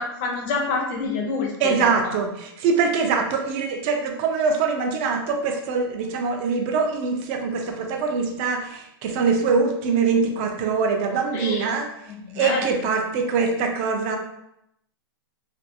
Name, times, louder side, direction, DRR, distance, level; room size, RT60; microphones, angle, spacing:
voice 1, 0.0-2.1 11.3-11.7 12.1-12.7, left 3 dB, 30° left, 0 dB, 0.5 m, -28 dB
voice 2, 1.6-11.9 12.4-14.2, right 5 dB, 25° right, 3 dB, 0.3 m, -23 dB
2.5 x 2.2 x 2.5 m, 0.80 s
hypercardioid pair, 160°, 13 cm